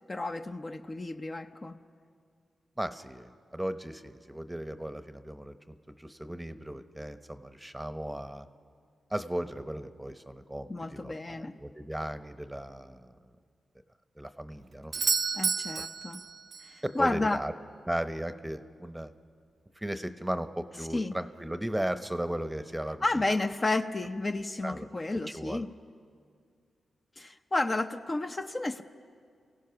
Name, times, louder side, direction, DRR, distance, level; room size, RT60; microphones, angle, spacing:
voice 1, 0.0-1.8 10.7-11.5 15.3-16.2 16.6-17.4 20.9-21.1 23.0-25.7 27.2-28.8, left 2 dB, 30° left, 7 dB, 0.7 m, -31 dB
voice 2, 2.8-8.5 9.1-13.1 14.2-14.9 16.8-17.5 17.9-19.1 19.8-23.2 24.6-24.9 25.3-25.6, right 1 dB, 10° right, 10 dB, 0.9 m, -36 dB
Doorbell, 14.9-16.8 20.8-20.9, right 5 dB, 60° right, 0.5 m, -31 dB
29.0 x 16.0 x 5.8 m, 2.2 s
cardioid pair, 60°, 0 cm